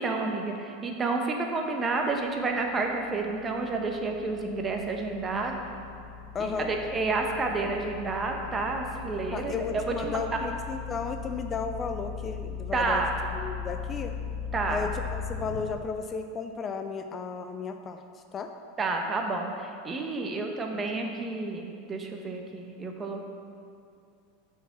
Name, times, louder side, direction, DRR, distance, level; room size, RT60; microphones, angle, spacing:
voice 1, 0.0-5.6 6.4-10.2 12.7-13.1 14.5-14.9 18.8-23.2, right 3 dB, 25° right, 2 dB, 1.0 m, -30 dB
sound 1, 2.3-15.6, left 6 dB, 50° left, 1.2 m, -38 dB
voice 2, 6.3-6.7 9.3-13.0 13.3-14.1 14.7-18.0 18.3-18.5, left 5 dB, 30° left, 7 dB, 0.4 m, -34 dB
6.9 x 4.7 x 6.0 m, 2.4 s
hypercardioid pair, 95°, 0 cm